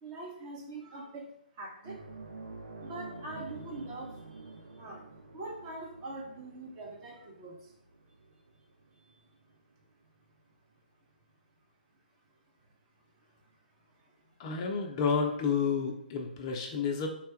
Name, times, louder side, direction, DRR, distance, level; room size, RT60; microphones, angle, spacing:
voice 1, 0.0-1.3 1.5-2.0 2.8-5.0 5.3-7.7 8.9-9.2 13.9-14.1, right 2 dB, 25° right, -1 dB, 0.8 m, -43 dB
sound 1, 1.8-10.8 11.1-11.3 13.4-13.5, right 3 dB, 70° right, 0.5 m, -49 dB
voice 2, 14.4-17.1, left 5 dB, 30° left, 2 dB, 0.4 m, -30 dB
3.5 x 2.2 x 4.4 m, 0.72 s
figure-of-eight pair, 135°, 5 cm